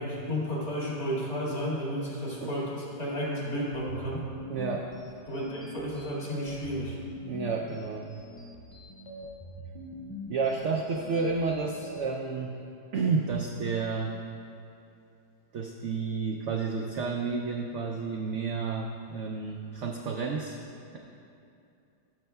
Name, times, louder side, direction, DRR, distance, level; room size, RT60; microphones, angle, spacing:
voice 1, 0.0-4.2 5.3-7.0, equal, 60° left, -7 dB, 2.7 m, -32 dB
sound 1, 3.7-12.0, left 1 dB, 20° left, 1.0 m, -44 dB
voice 2, 4.5-4.9 7.3-8.1 10.3-12.6 12.9-14.1 15.5-20.6 20.9-21.0, right 4 dB, 75° right, 1 dB, 0.6 m, -31 dB
15.0 x 6.4 x 2.3 m, 2.6 s
omnidirectional pair, 1.7 m